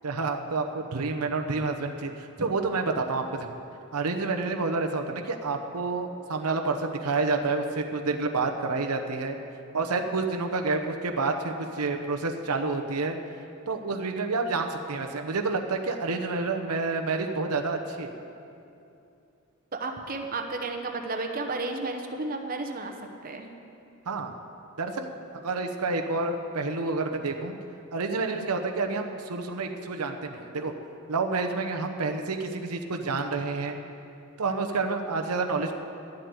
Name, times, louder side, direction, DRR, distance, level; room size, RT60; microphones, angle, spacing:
voice 1, 0.0-3.6 3.9-9.4 9.7-13.2 13.7-18.1 24.1-24.3 24.8-25.1 25.4-27.6 27.9-30.7 31.1-33.8 34.4-35.7, right 3 dB, 85° right, 4 dB, 0.9 m, -29 dB
voice 2, 19.7-22.9 23.2-23.5, right 3 dB, 40° right, 4 dB, 0.9 m, -32 dB
11.0 x 7.9 x 9.5 m, 2.7 s
head